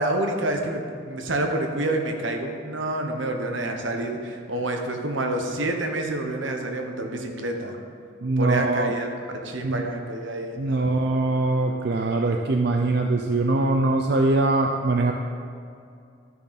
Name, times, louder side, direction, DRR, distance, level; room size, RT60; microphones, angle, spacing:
voice 1, 0.0-7.8 8.4-9.1 9.3-11.0, right 1 dB, 80° right, 4 dB, 1.1 m, -28 dB
voice 2, 8.2-9.0 9.6-9.9 10.6-15.1, right 2 dB, 55° right, 2 dB, 0.5 m, -22 dB
12.5 x 6.9 x 4.2 m, 2.4 s
head